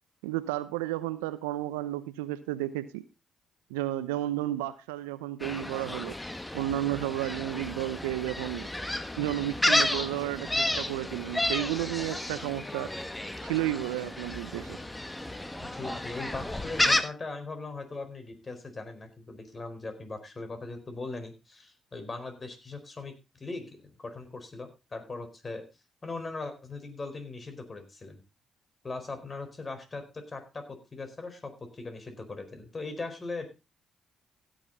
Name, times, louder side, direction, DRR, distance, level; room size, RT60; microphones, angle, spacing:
voice 1, 0.2-3.0 3.7-6.1 6.5-8.7 9.2-12.9 13.4-14.8, right 14 dB, 90° right, 0.7 m, -32 dB
Gull seagull, 5.4-17.0, left 1 dB, 15° left, 1.6 m, -31 dB
voice 2, 15.6-25.6 26.0-28.2 28.8-33.5, left 3 dB, 40° left, 4.5 m, -40 dB
16.5 x 8.2 x 4.0 m
hypercardioid pair, 45°, 0 cm